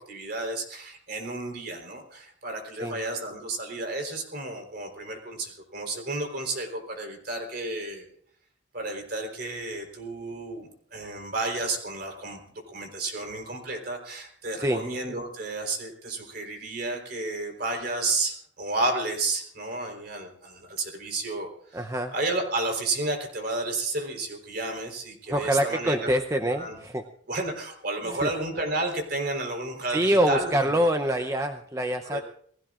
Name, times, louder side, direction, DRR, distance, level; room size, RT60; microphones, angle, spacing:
voice 1, 0.1-2.0 2.4-6.7 7.0-8.0 8.7-10.6 10.9-12.4 12.7-18.3 18.6-20.3 20.9-21.5 22.1-26.1 26.5-26.8 27.3-30.8 32.1-32.2, right 2 dB, 50° right, 3 dB, 4.0 m, -31 dB
voice 2, 21.7-22.1 25.3-27.0 28.1-28.3 29.9-32.2, equal, 15° right, 6 dB, 0.7 m, -25 dB
29.0 x 19.5 x 2.5 m, 0.63 s
head